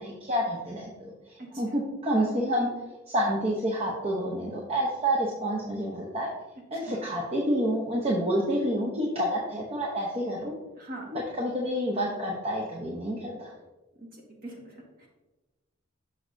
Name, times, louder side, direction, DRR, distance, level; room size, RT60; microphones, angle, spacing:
voice 1, 0.0-2.7 3.1-6.3 6.7-10.5 11.1-13.5, equal, 30° right, -2 dB, 0.7 m, -28 dB
voice 2, 1.4-1.8 6.8-7.0 10.8-11.1 14.0-15.1, right 1 dB, 45° right, -1 dB, 1.5 m, -43 dB
6.2 x 6.2 x 2.6 m, 1.1 s
head